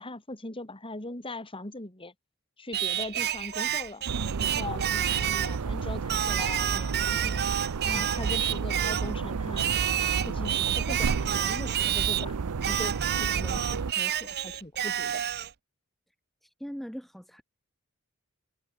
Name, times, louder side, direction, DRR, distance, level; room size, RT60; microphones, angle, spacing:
voice 1, 0.0-2.1 2.6-4.1 4.4-7.5 7.8-9.8 10.2-12.4 12.6-15.2, left 2 dB, 25° left, 3.1 m, -40 dB
Singing, 2.7-5.6 6.1-9.1 9.6-12.3 12.6-15.5, right 11 dB, 45° right, 0.7 m, -29 dB
sound 1, 4.1-13.9, right 5 dB, 80° right, 0.6 m, -32 dB
voice 2, 16.4-17.4, equal, ahead, 1.1 m, -40 dB
head